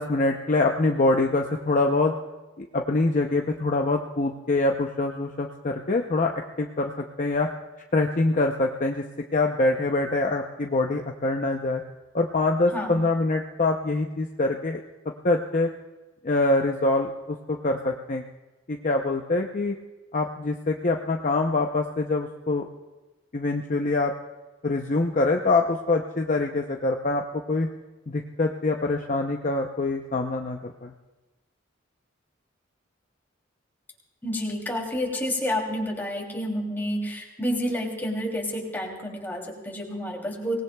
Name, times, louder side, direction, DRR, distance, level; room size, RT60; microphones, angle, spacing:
voice 1, 0.0-2.1 2.6-6.9 7.2-7.5 7.9-9.0 9.3-11.8 12.1-14.8 15.2-15.7 16.2-18.2 18.7-19.7 20.1-22.7 23.3-24.1 24.6-27.2 27.5-27.7 28.1-30.9, left 2 dB, 40° left, 2 dB, 0.6 m, -24 dB
voice 2, 34.2-40.6, equal, 10° left, -1 dB, 2.9 m, -29 dB
24.5 x 19.0 x 2.3 m, 1.1 s
head